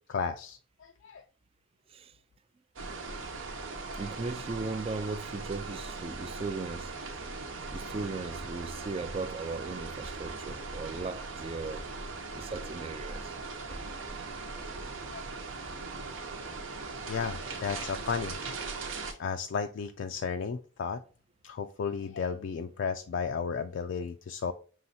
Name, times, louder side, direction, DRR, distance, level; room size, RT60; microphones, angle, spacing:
voice 1, 0.1-1.2 3.7-4.0 15.1-15.3 17.0-18.3 19.2-21.0 21.4-24.5, left 6 dB, 70° left, 0.4 m, -34 dB
sound 1, 2.8-19.1, right 3 dB, 80° right, 0.9 m, -39 dB
voice 2, 4.0-7.0 7.7-11.8 12.3-13.3, right 3 dB, 30° right, 0.3 m, -37 dB
5.6 x 3.1 x 2.7 m
head